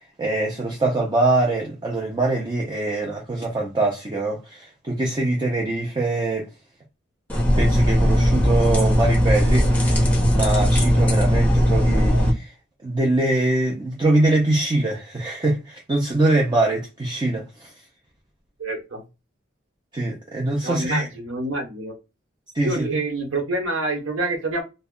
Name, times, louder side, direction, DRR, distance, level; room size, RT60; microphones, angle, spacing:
voice 1, 0.2-6.5 7.6-10.0 10.3-12.5 12.8-17.7 19.9-21.1 22.5-22.9, right 2 dB, 20° right, 0.5 m, -23 dB
sound 1, 7.3-12.3, equal, 10° left, 0.8 m, -18 dB
voice 2, 18.6-19.0 20.6-21.9 22.6-24.6, right 2 dB, 90° right, 1.0 m, -27 dB
2.2 x 2.0 x 3.6 m
head